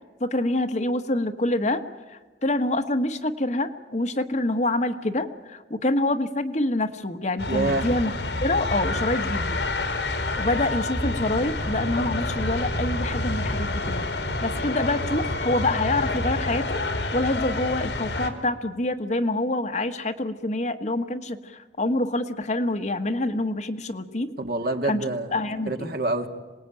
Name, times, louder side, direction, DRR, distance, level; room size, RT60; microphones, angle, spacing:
voice 1, 0.2-8.1 8.4-9.6 10.4-14.1 14.4-24.3 24.8-25.0 25.3-25.9, left 2 dB, 40° left, 7 dB, 1.4 m, -26 dB
sound 1, 7.4-18.3, left 2 dB, 80° left, 2.9 m, -28 dB
voice 2, 7.5-7.9 24.4-25.3 25.7-26.3, right 2 dB, 60° right, 5 dB, 2.1 m, -26 dB
26.5 x 19.5 x 9.1 m, 1.2 s
head